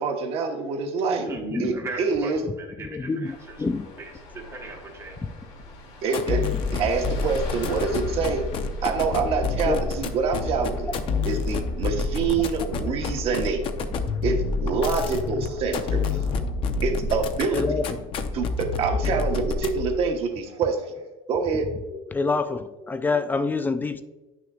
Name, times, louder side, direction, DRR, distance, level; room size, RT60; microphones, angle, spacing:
voice 1, 0.0-1.3 1.6-2.4 6.0-8.4 8.8-10.9 11.2-13.6 14.2-16.4 16.8-17.6 18.3-20.9 21.3-21.7, right 5 dB, 50° right, 3 dB, 1.2 m, -26 dB
voice 2, 1.1-3.6 4.0-5.2 5.9-6.0 7.5-7.6, right 3 dB, 20° right, 0 dB, 1.2 m, -38 dB
voice 3, 2.8-3.9 5.2-5.3 9.7-9.8 17.5-18.0 21.9-24.0, left 4 dB, 15° left, 10 dB, 0.3 m, -27 dB
sound 1, 3.2-13.5, left 3 dB, 80° left, 2.6 m, -44 dB
sound 2, 6.1-20.0, left 3 dB, 45° left, 0.7 m, -28 dB
9.7 x 6.2 x 2.4 m, 1.1 s
cardioid pair, 140°, 13 cm